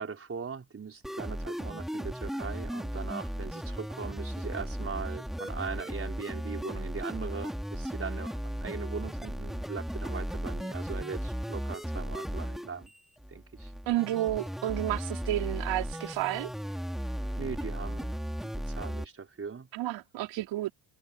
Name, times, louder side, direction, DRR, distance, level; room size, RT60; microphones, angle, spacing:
voice 1, 0.0-8.3 8.6-12.9 13.3-13.7 17.4-18.2 18.4-19.7, right 5 dB, 30° right, 4.5 m, -40 dB
sound 1, 1.0-19.1, equal, ahead, 4.5 m, -36 dB
voice 2, 13.9-16.5 19.7-20.7, right 15 dB, 85° right, 4.8 m, -31 dB
cardioid pair, 95°, 43 cm